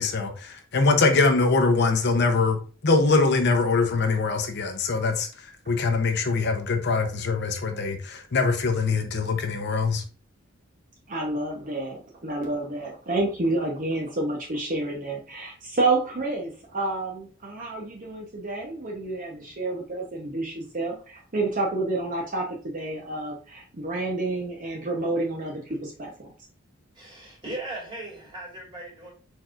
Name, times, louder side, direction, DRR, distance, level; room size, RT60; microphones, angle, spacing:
voice 1, 0.0-2.6 2.8-10.0, left 3 dB, 55° left, 5 dB, 0.7 m, -23 dB
voice 2, 11.1-26.3, right 2 dB, 40° right, 0 dB, 0.8 m, -29 dB
voice 3, 26.9-29.1, right 1 dB, 25° right, -3 dB, 2.3 m, -38 dB
4.5 x 4.5 x 2.4 m, 0.39 s
head